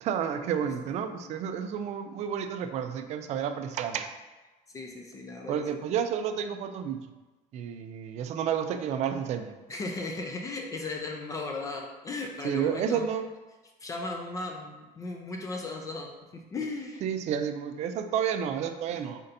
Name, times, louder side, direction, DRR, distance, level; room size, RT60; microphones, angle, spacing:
voice 1, 0.0-4.1 5.5-7.0 7.5-9.5 12.4-13.3 17.0-19.2, right 8 dB, 45° right, 8 dB, 0.4 m, -30 dB
voice 2, 4.7-5.8 9.7-13.1 13.8-17.0 18.9-19.0, left 3 dB, 20° left, 2 dB, 0.4 m, -36 dB
4.3 x 4.0 x 2.6 m, 1.2 s
cardioid pair, 150°, 16 cm